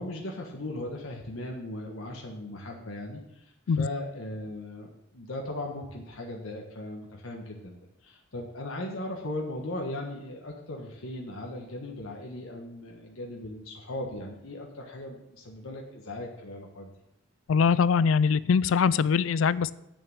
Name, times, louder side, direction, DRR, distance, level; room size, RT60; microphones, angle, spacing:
voice 1, 0.0-3.4 3.8-16.9, left 1 dB, 90° left, 0 dB, 1.5 m, -38 dB
voice 2, 17.5-19.7, left 6 dB, 70° left, 18 dB, 0.4 m, -22 dB
8.7 x 6.7 x 7.3 m, 0.85 s
head